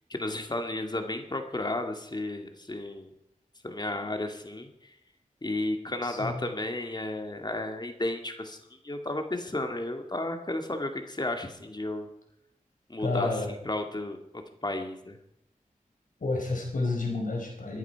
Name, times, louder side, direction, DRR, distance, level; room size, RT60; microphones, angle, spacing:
voice 1, 0.1-3.1 3.6-4.7 5.4-8.6 8.8-12.1 12.9-15.2, left 2 dB, 30° left, 5 dB, 2.1 m, -33 dB
voice 2, 6.0-6.4 13.0-13.5 16.2-17.8, left 3 dB, 70° left, 1 dB, 4.8 m, -30 dB
21.5 x 11.0 x 4.7 m, 0.79 s
wide cardioid pair, 60°, 14 cm